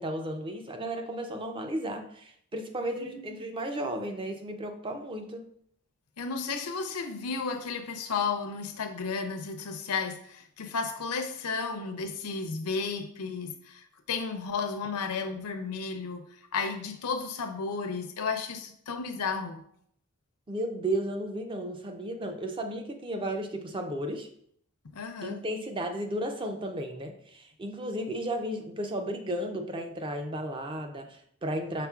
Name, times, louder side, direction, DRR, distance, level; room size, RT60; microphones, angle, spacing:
voice 1, 0.0-5.4 20.5-24.3 25.2-31.9, right 1 dB, 20° right, 0.4 m, -34 dB
voice 2, 3.0-3.4 6.2-19.6 24.9-25.4, left 5 dB, 90° left, 0.5 m, -33 dB
5.8 x 3.5 x 2.3 m
head